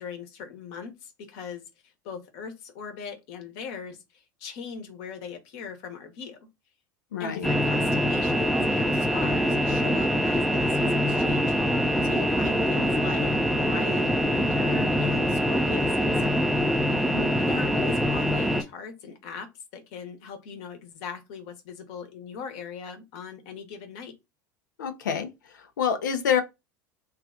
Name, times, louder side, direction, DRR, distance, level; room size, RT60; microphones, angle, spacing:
voice 1, 0.0-1.6 2.0-6.5 7.2-16.5 17.4-24.1, left 6 dB, 60° left, 1.1 m, -40 dB
voice 2, 7.1-7.5 17.0-17.3 24.8-26.4, left 8 dB, 75° left, 0.6 m, -28 dB
sound 1, 7.4-18.6, equal, ahead, 0.5 m, -24 dB
3.3 x 2.4 x 3.7 m
hypercardioid pair, 80°, 10 cm